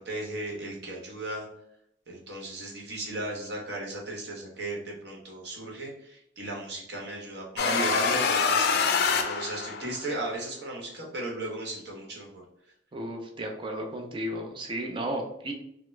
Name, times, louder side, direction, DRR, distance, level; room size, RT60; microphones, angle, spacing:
voice 1, 0.0-1.5 2.1-12.4, right 2 dB, 60° right, -1 dB, 1.0 m, -36 dB
sound 1, 7.6-10.1, left 5 dB, 60° left, 0.4 m, -25 dB
voice 2, 12.9-15.5, right 1 dB, 25° right, 2 dB, 0.5 m, -34 dB
3.5 x 2.0 x 3.1 m, 0.74 s
head